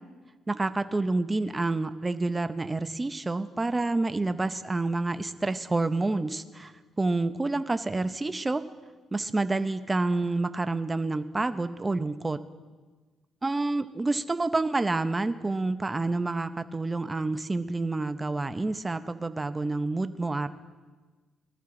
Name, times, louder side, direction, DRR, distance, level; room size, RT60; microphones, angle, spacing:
voice 1, 0.5-6.7 7.0-8.6 9.1-12.4 13.4-20.5, right 2 dB, 20° right, 11 dB, 0.8 m, -28 dB
20.0 x 14.0 x 3.9 m, 1.3 s
cardioid pair, 90°, 0 cm